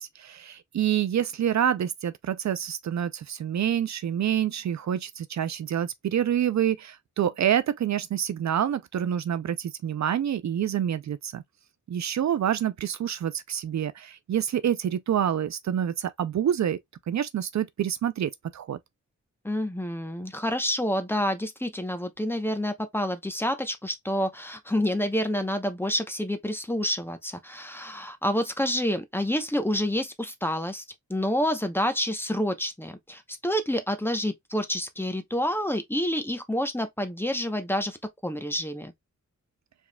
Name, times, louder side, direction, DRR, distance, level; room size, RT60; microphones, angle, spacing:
voice 1, 0.0-11.4 11.9-16.8 17.1-18.8, right 9 dB, 65° right, 0.4 m, -27 dB
voice 2, 19.4-30.8 31.1-38.0 38.2-38.9, equal, 5° left, 0.9 m, -28 dB
4.7 x 3.6 x 2.2 m
wide cardioid pair, 120°, 30 cm